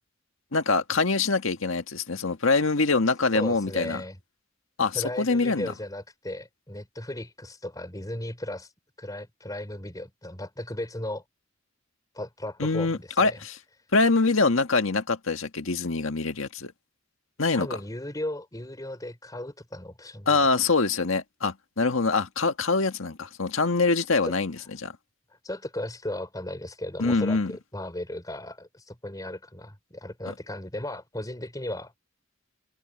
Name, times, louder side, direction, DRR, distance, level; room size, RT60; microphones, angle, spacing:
voice 1, 0.5-4.0 4.8-5.7 12.6-13.6 13.9-16.7 17.4-17.7 20.3-24.9 27.0-27.5 30.3-30.4, left 3 dB, 80° left, 1.7 m, -24 dB
voice 2, 3.3-4.2 4.9-8.7 9.0-11.2 12.1-13.4 17.5-20.5 24.2-24.3 25.3-31.9, left 1 dB, 20° left, 3.8 m, -36 dB
head